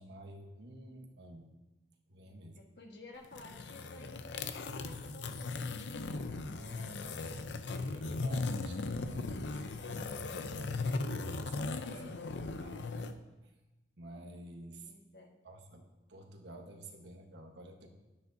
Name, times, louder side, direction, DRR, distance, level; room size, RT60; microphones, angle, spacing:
voice 1, 0.0-1.5 2.1-2.6 6.5-7.4 7.8-12.1 12.6-12.8 14.0-14.9 15.4-17.9, right 1 dB, 80° right, 3 dB, 1.2 m, -51 dB
voice 2, 2.5-6.5 7.9-8.2 11.7-12.7 14.8-15.4, left 2 dB, 65° left, 1 dB, 1.4 m, -54 dB
sound 1, 3.2-13.1, left 3 dB, 85° left, 0.6 m, -38 dB
12.5 x 10.5 x 2.7 m, 1.1 s
head